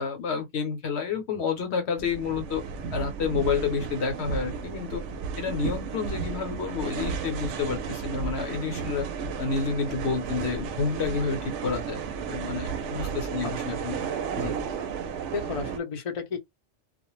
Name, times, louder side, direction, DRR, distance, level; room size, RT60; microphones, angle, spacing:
voice 1, 0.0-2.6 2.9-5.0 5.4-9.1 9.4-12.0 12.3-14.0 14.4-14.6, left 5 dB, 65° left, 1.0 m, -29 dB
sound 1, 2.0-15.8, right 6 dB, 75° right, 0.9 m, -33 dB
voice 2, 13.4-13.8 15.3-16.4, left 5 dB, 35° left, 0.6 m, -33 dB
2.3 x 2.1 x 3.0 m
omnidirectional pair, 1.2 m